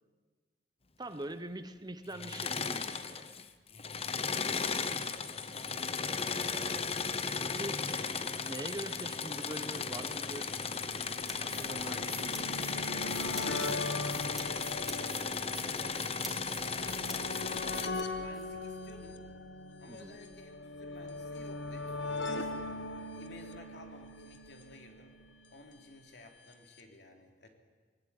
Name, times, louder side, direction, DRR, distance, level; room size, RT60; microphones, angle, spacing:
voice 1, 1.0-3.3 6.0-6.9 7.4-7.8 8.4-10.5 11.4-12.1 19.9-20.2, right 1 dB, 25° right, 10 dB, 1.1 m, -43 dB
Engine / Mechanisms, 2.1-3.4 3.7-17.9, left 5 dB, 35° left, 1.0 m, -35 dB
voice 2, 7.8-8.3 11.4-16.1 16.6-19.3 19.8-22.5 23.2-25.2 25.5-27.5, left 2 dB, 65° left, 3 dB, 3.3 m, -53 dB
sound 1, 9.4-9.5 10.3-25.6 26.5-26.6 26.8-26.9, left 2 dB, 85° left, 1.7 m, -41 dB
sound 2, 11.0-18.4, right 1 dB, ahead, 3.2 m, -47 dB
24.0 x 19.5 x 9.6 m, 1.4 s
head